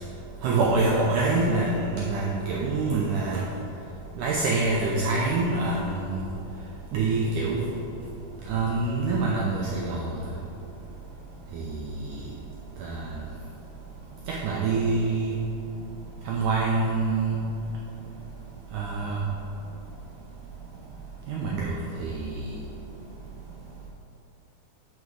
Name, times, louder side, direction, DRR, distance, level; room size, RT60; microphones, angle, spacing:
voice 1, 0.4-3.4 4.2-6.2 6.9-7.6 8.5-10.2 11.5-11.8 12.1-12.2 12.8-13.1 14.3-15.3 16.2-17.4 18.7-19.2 21.3-22.5, right 3 dB, 80° right, -3 dB, 1.8 m, -26 dB
9.4 x 4.7 x 4.8 m, 3.0 s
omnidirectional pair, 4.3 m